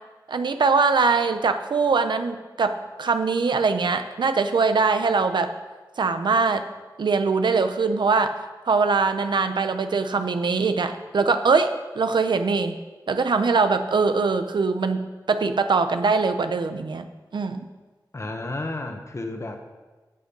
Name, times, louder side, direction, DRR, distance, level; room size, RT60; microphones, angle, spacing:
voice 1, 0.3-5.5 6.0-6.6 7.0-12.8 13.1-17.0 17.3-17.6, right 4 dB, 85° right, 9 dB, 0.9 m, -22 dB
voice 2, 18.1-19.6, left 2 dB, 40° left, 5 dB, 1.5 m, -32 dB
16.0 x 6.5 x 5.5 m, 1.3 s
wide cardioid pair, 80°, 8 cm